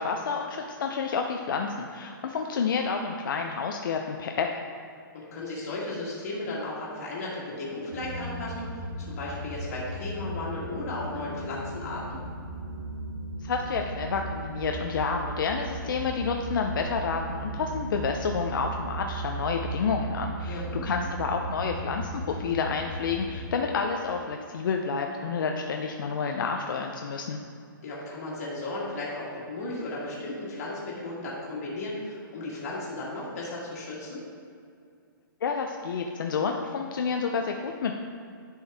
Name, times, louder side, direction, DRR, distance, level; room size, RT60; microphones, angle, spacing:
voice 1, 0.0-4.5 13.4-27.4 35.4-37.9, left 5 dB, 65° left, 3 dB, 0.5 m, -29 dB
voice 2, 5.1-12.2 20.5-20.8 27.8-34.2, left 2 dB, 45° left, -6 dB, 1.6 m, -35 dB
sound 1, 7.9-23.5, right 2 dB, 55° right, 1.7 m, -36 dB
10.5 x 4.6 x 3.4 m, 2.3 s
hypercardioid pair, 165°, 12 cm